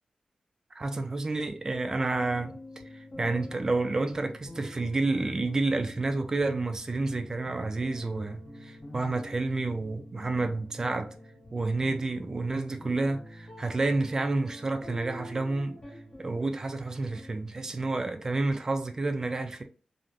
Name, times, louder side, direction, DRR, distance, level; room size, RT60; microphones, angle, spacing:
voice 1, 0.8-2.6 2.9-11.1 11.5-15.8 16.2-19.6, right 3 dB, 25° right, 0.3 m, -30 dB
sound 1, 1.3-17.9, left 1 dB, 30° left, 1.1 m, -46 dB
3.3 x 2.5 x 2.3 m
wide cardioid pair, 160°, 2 cm